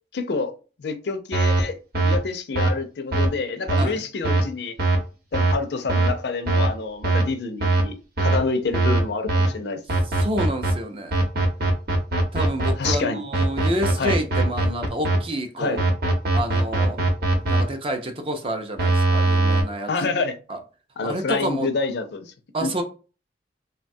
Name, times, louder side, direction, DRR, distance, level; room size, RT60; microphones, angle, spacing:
voice 1, 0.1-4.8 5.3-9.8 12.8-13.2 14.0-14.2 15.6-15.8 19.9-20.4 21.0-22.3 22.6-22.7, left 4 dB, 65° left, 0.4 m, -27 dB
sound 1, 1.3-1.6 1.9-2.2 2.6-2.7 3.1-3.3 3.7-3.8 4.2-4.4 4.8-5.0 5.3-5.5 5.9-6.1 6.5-6.7 7.0-7.2 7.6-7.8 8.2-8.4 8.7-9.0 9.3-9.5 9.9-10.7 11.1-12.9 13.3-15.2 15.8-17.6 18.8-19.6, right 2 dB, 55° right, 0.8 m, -20 dB
voice 2, 10.1-11.2 12.3-15.8 16.3-17.0 17.4-19.9 20.5-20.6 21.0-21.7 22.5-22.8, right 1 dB, 30° right, 0.4 m, -28 dB
3.2 x 2.2 x 2.6 m
head